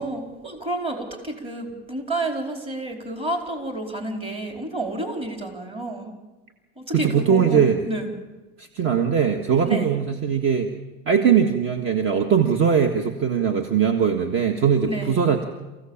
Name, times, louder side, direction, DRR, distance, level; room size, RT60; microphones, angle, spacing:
voice 1, 0.0-6.1 6.8-8.1 9.6-9.9 14.9-15.3, right 1 dB, 20° right, 2 dB, 4.6 m, -30 dB
voice 2, 6.9-7.8 8.6-10.7 11.1-15.4, right 7 dB, 40° right, 6 dB, 1.7 m, -20 dB
29.0 x 16.0 x 7.4 m, 1.2 s
supercardioid pair, 125°, 31 cm